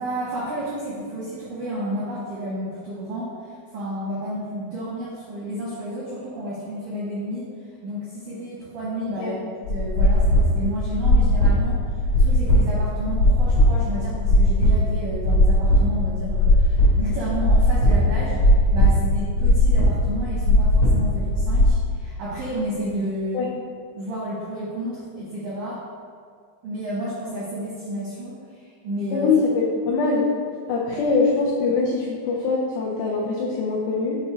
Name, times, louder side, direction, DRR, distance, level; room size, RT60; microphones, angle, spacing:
voice 1, 0.0-7.5 7.8-9.4 9.7-23.5 23.9-25.8 26.6-29.3 31.0-31.1, equal, 85° right, -8 dB, 1.8 m, -31 dB
sound 1, 9.6-21.7, left 1 dB, 65° left, 1.5 m, -18 dB
voice 2, 29.1-30.3 30.7-34.2, left 4 dB, 90° left, -4 dB, 2.3 m, -23 dB
7.8 x 2.7 x 4.8 m, 2.1 s
omnidirectional pair, 5.5 m